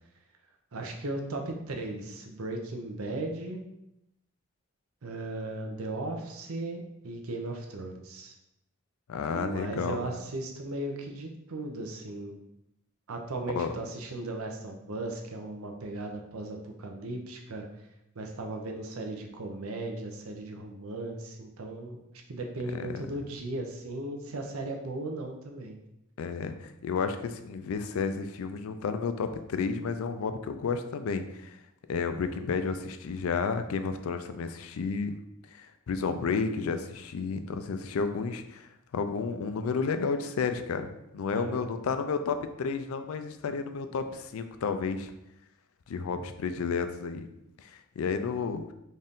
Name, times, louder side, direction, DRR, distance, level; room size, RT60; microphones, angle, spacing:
voice 1, 0.7-3.6 5.0-8.3 9.3-12.4 13.1-17.6 18.2-22.0 22.3-25.8 41.3-41.7, right 2 dB, 85° right, 3 dB, 0.7 m, -37 dB
voice 2, 9.1-10.0 13.5-13.7 22.8-23.1 26.2-31.6 31.9-35.1 35.5-45.1 45.9-47.3 47.6-48.6, left 5 dB, 75° left, 9 dB, 0.4 m, -32 dB
4.1 x 2.5 x 3.6 m, 0.85 s
head